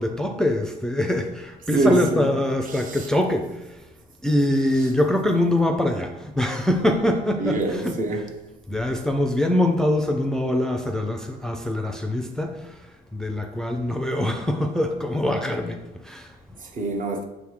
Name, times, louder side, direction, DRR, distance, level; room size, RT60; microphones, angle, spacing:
voice 1, 0.0-3.9 4.2-8.0 8.7-16.6, left 1 dB, 5° left, 0.5 m, -24 dB
voice 2, 1.7-2.3 2.7-3.1 7.4-8.2 16.6-17.3, right 2 dB, 50° right, 1.1 m, -24 dB
6.4 x 3.5 x 4.7 m
cardioid pair, 110°, 17 cm